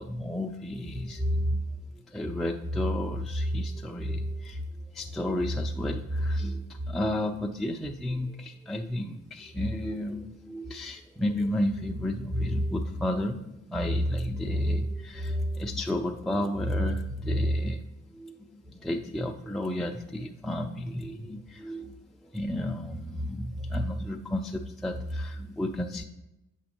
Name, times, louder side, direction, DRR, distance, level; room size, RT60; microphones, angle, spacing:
voice 1, 0.0-1.7 2.1-4.6 4.9-17.8 18.1-21.9 22.2-26.0, equal, ahead, 1 dB, 0.4 m, -31 dB
7.6 x 6.2 x 2.9 m, 0.93 s
cardioid pair, 90°, 30 cm